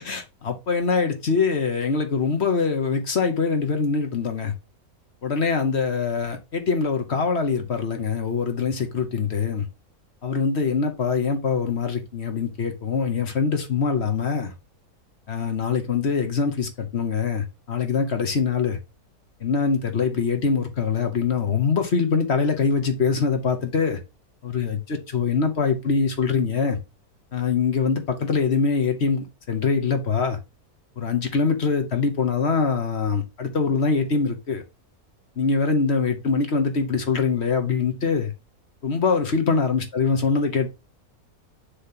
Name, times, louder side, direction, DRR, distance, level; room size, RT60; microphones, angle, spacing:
voice 1, 0.0-4.5 5.2-9.7 10.2-14.5 15.3-18.8 19.4-24.0 24.4-26.8 27.3-30.4 31.0-34.6 35.4-38.3 38.8-40.7, left 5 dB, 45° left, 1.3 m, -23 dB
6.8 x 3.2 x 5.6 m
omnidirectional pair, 1.6 m